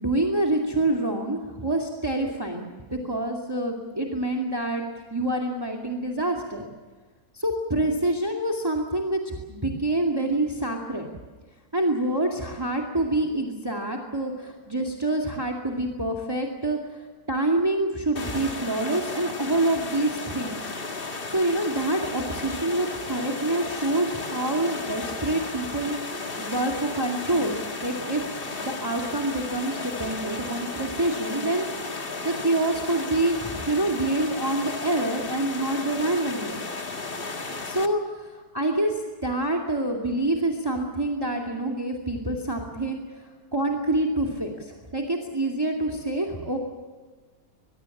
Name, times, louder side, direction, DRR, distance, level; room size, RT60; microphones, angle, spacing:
voice 1, 0.0-4.8 5.1-6.6 7.3-11.1 11.7-20.7 21.3-27.6 27.8-28.2 28.6-36.6 37.6-43.2 43.5-46.6, right 1 dB, 15° right, 0 dB, 2.4 m, -27 dB
sound 1, 18.2-37.9, left 3 dB, 40° left, 1.8 m, -34 dB
23.0 x 23.0 x 7.3 m, 1.4 s
omnidirectional pair, 1.6 m